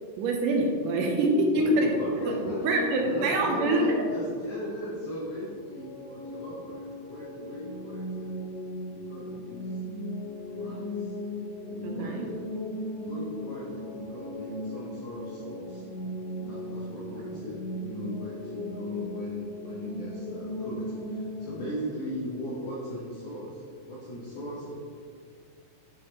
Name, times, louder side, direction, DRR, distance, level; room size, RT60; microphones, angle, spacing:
voice 1, 0.2-1.9 2.3-2.4 2.6-3.9 11.8-12.3 16.9-17.0 17.3-17.4, right 2 dB, 80° right, 1 dB, 1.9 m, -25 dB
voice 2, 1.5-8.3 8.9-9.8 10.4-11.2 11.7-12.4 12.9-15.9 16.4-24.7, equal, 65° left, -7 dB, 2.2 m, -37 dB
sound 1, 5.4-21.7, left 1 dB, 35° right, 1.8 m, -37 dB
9.8 x 7.8 x 2.9 m, 2.3 s
omnidirectional pair, 4.7 m